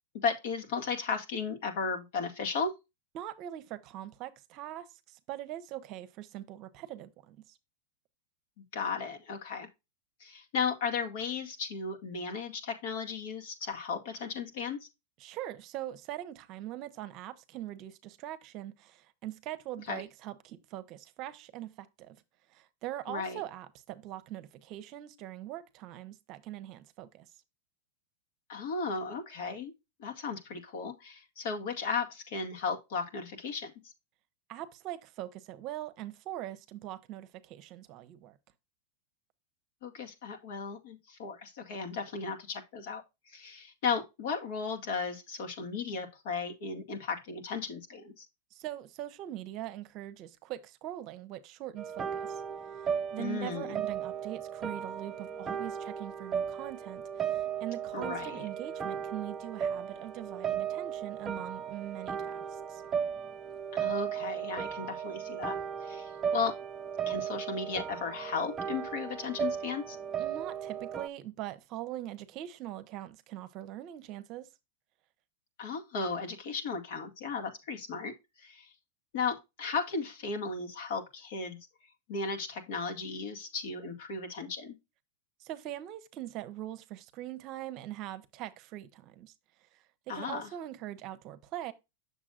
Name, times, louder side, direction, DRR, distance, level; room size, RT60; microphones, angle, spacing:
voice 1, 0.2-2.7 8.7-9.7 10.2-14.9 19.9-20.0 23.1-23.4 28.5-29.7 30.0-33.9 39.8-43.0 43.3-48.3 53.2-53.8 57.9-58.5 63.7-65.6 65.8-66.5 67.1-70.0 75.6-78.7 79.1-81.6 82.1-84.8 90.1-90.5, left 5 dB, 65° left, 2.1 m, -35 dB
voice 2, 3.1-7.6 15.2-22.2 22.5-27.3 34.5-38.4 48.5-52.4 52.7-52.9 53.1-62.8 70.2-74.5 85.4-89.3 89.7-91.7, right 13 dB, 45° right, 0.8 m, -42 dB
sound 1, 51.8-71.1, right 8 dB, 25° right, 0.5 m, -36 dB
7.4 x 6.8 x 2.5 m
hypercardioid pair, 115°, 0 cm